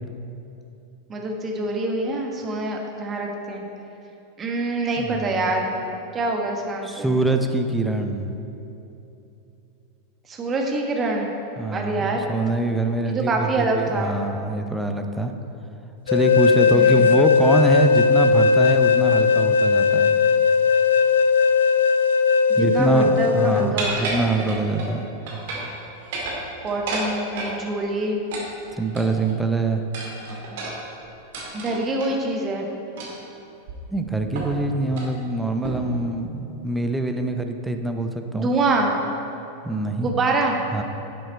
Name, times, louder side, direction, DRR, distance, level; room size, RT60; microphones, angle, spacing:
voice 1, 1.1-3.6 4.4-5.7 6.1-7.1 10.3-11.3 11.7-12.3 13.0-14.1 16.7-17.1 22.6-24.5 26.6-28.2 31.5-32.6 38.4-38.9 39.9-40.6, right 2 dB, 25° right, 1 dB, 1.4 m, -25 dB
voice 2, 5.0-5.5 6.8-8.4 11.6-15.3 16.1-20.1 22.6-25.1 28.8-29.8 33.9-38.5 39.6-40.1 40.7-40.8, right 2 dB, 5° right, 5 dB, 0.7 m, -24 dB
sound 1, 16.1-23.7, left 5 dB, 65° left, 0.4 m, -18 dB
sound 2, 23.8-24.9 25.3-25.7 26.0-27.6 28.3-29.3 29.9-32.1 33.0-33.3 33.7-33.8 34.3-34.6 34.9-35.1 35.6-36.0, right 2 dB, 55° right, 2.1 m, -31 dB
11.0 x 7.8 x 4.3 m, 2.9 s
figure-of-eight pair, 90°, 0 cm